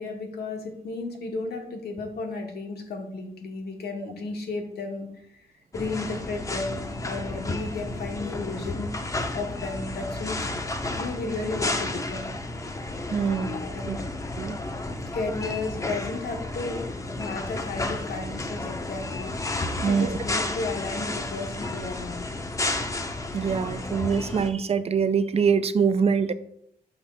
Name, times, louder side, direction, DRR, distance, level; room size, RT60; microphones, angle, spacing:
voice 1, 0.0-5.1 5.7-8.9 9.3-10.5 10.9-12.3 13.5-14.0 15.1-16.8 17.1-19.3 19.7-22.3, left 3 dB, 80° left, 2 dB, 1.3 m, -33 dB
sound 1, 5.7-24.5, left 2 dB, 20° left, 0.6 m, -32 dB
voice 2, 13.1-13.6 13.9-14.0 14.4-14.6 19.8-20.2 23.3-26.3, right 6 dB, 40° right, 12 dB, 0.4 m, -24 dB
6.7 x 3.1 x 5.6 m, 0.73 s
cardioid pair, 110°, 16 cm